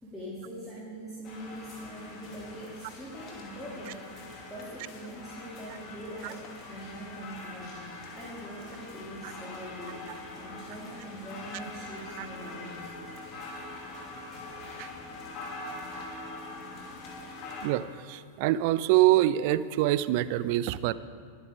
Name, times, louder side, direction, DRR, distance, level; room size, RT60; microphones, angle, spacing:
voice 1, 0.0-4.0 4.5-10.0 10.3-12.9 14.3-14.5, equal, 5° left, -9 dB, 3.0 m, -43 dB
sound 1, 1.2-17.7, left 2 dB, 35° left, 2.2 m, -43 dB
voice 2, 17.6-20.9, right 14 dB, 45° right, 17 dB, 0.4 m, -25 dB
22.0 x 8.1 x 3.7 m, 2.2 s
figure-of-eight pair, 90°, 0 cm